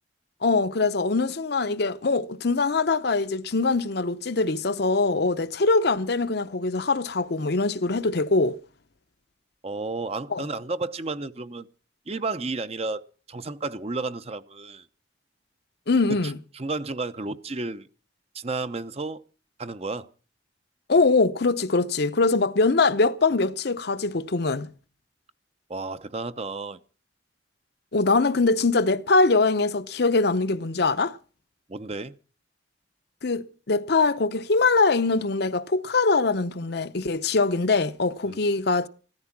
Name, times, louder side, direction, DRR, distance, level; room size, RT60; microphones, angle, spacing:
voice 1, 0.4-8.6 10.3-10.4 15.9-16.4 20.9-24.7 27.9-31.2 33.2-38.9, left 3 dB, 60° left, 0.8 m, -23 dB
voice 2, 9.6-11.7 12.1-13.0 13.3-14.8 16.1-17.9 18.3-19.2 19.6-20.1 25.7-26.8 31.7-32.2 38.3-38.4, right 3 dB, 35° right, 0.7 m, -32 dB
15.5 x 14.0 x 5.9 m
head